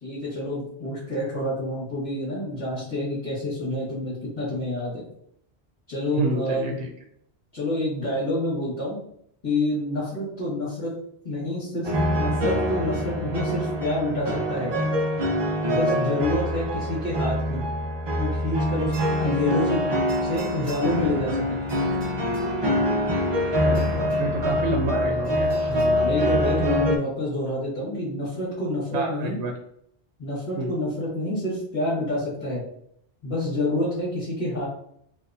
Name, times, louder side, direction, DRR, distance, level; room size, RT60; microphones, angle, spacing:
voice 1, 0.0-5.0 5.9-6.8 7.5-9.0 9.4-10.9 11.2-14.7 15.7-17.6 18.2-19.8 20.2-21.6 25.6-29.4 30.2-32.6 33.2-34.6, left 1 dB, 45° left, -10 dB, 1.6 m, -28 dB
voice 2, 6.1-6.9 23.6-25.7 28.9-29.5 30.6-30.7, right 2 dB, 90° right, 2 dB, 0.9 m, -28 dB
sound 1, 11.8-27.0, equal, 35° right, 0.5 m, -25 dB
sound 2, 17.6-25.9, right 2 dB, ahead, 1.2 m, -46 dB
4.1 x 2.4 x 2.6 m, 0.69 s
omnidirectional pair, 1.1 m